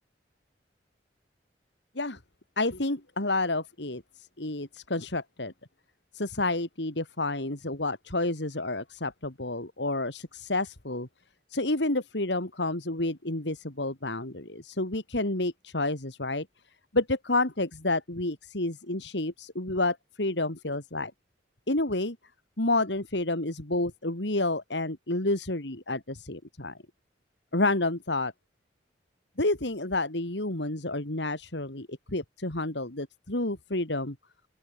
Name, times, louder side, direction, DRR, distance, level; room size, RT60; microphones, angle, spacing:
voice 1, 2.6-5.5 6.1-11.1 11.5-16.5 16.9-21.1 21.7-22.2 22.6-26.8 27.5-28.3 29.4-34.2, left 2 dB, 75° left, 3.2 m, -30 dB
open air
head